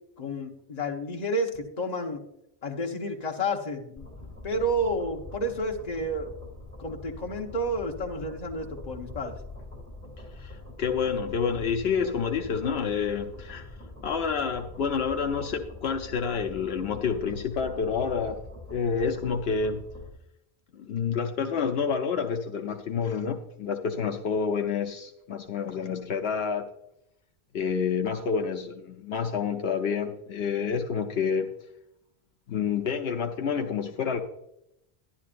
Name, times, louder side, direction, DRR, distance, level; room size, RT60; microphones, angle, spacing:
voice 1, 0.2-2.2 2.6-4.1 4.4-6.3 6.8-9.3, equal, 40° left, 2 dB, 1.1 m, -30 dB
sound 1, 4.0-20.1, left 2 dB, 10° left, 2.4 m, -44 dB
voice 2, 10.4-13.7 14.0-18.4 18.7-19.8 20.7-26.7 27.5-31.5 32.5-34.2, left 6 dB, 75° left, 4 dB, 0.9 m, -28 dB
11.5 x 11.0 x 2.5 m, 0.81 s
omnidirectional pair, 1.1 m